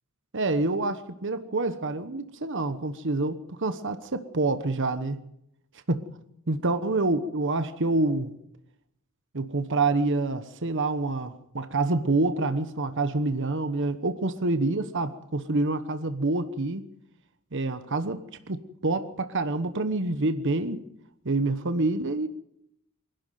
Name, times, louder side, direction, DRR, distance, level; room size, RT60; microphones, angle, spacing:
voice 1, 0.3-5.2 5.9-6.0 6.5-8.3 9.3-16.8 17.5-20.8 21.2-22.3, right 2 dB, 60° right, 1.2 m, -27 dB
25.0 x 12.0 x 9.3 m
head